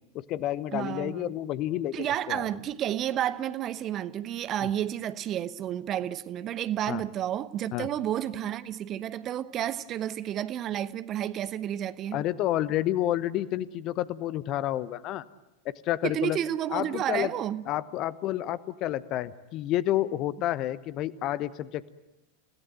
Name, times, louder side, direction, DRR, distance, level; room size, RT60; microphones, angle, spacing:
voice 1, 0.1-2.5 6.9-7.0 7.7-7.9 12.1-15.2 15.6-16.4 16.7-17.3 17.7-21.9, left 13 dB, 35° left, 1.1 m, -30 dB
voice 2, 0.7-1.3 1.9-12.2 16.0-17.6, right 11 dB, 30° right, 1.0 m, -31 dB
30.0 x 17.5 x 9.2 m
figure-of-eight pair, 90°, 0 cm